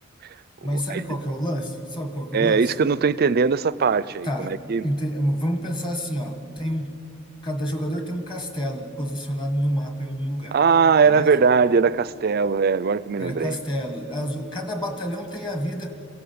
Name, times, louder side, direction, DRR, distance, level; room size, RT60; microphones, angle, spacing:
voice 1, 0.6-2.7 4.2-4.5 4.8-6.9 7.4-10.6 11.0-11.3 13.2-16.0, equal, 20° left, 1.7 m, -28 dB
voice 2, 2.3-4.9 10.5-13.6, right 5 dB, 45° right, 0.4 m, -20 dB
22.0 x 16.0 x 8.7 m
head